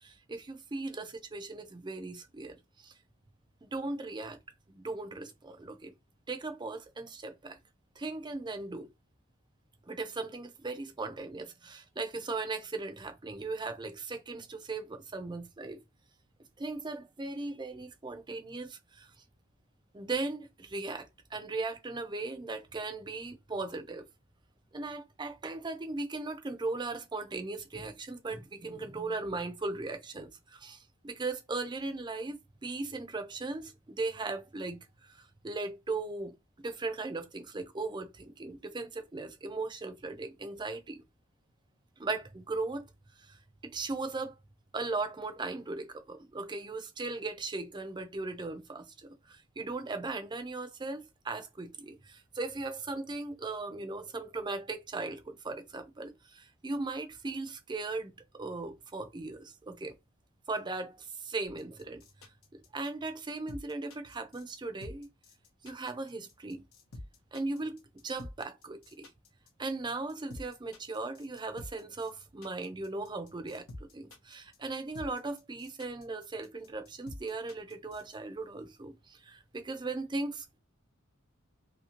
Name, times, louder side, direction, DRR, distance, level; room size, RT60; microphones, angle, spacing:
voice 1, 0.0-2.9 3.6-4.4 4.7-5.9 6.3-7.6 8.0-8.9 9.9-15.8 16.6-19.1 19.9-24.1 24.7-36.3 36.6-41.0 42.0-42.8 43.2-44.4 44.7-59.9 60.5-62.0 62.5-65.1 65.6-66.6 67.3-69.1 69.6-73.6 73.9-80.6, right 3 dB, 20° right, 0.5 m, -38 dB
sound 1, 61.4-78.2, left 1 dB, 80° left, 0.8 m, -48 dB
2.8 x 2.7 x 2.8 m
head